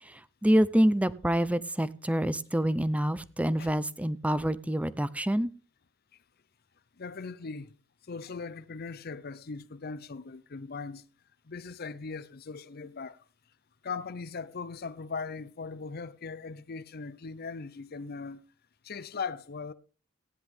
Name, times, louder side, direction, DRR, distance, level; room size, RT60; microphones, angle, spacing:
voice 1, 0.0-5.5, equal, 5° right, 0.6 m, -27 dB
voice 2, 7.0-7.7 8.0-11.0 11.4-13.2 13.8-18.4 18.8-19.7, left 4 dB, 50° left, 0.7 m, -39 dB
15.5 x 10.0 x 3.5 m
head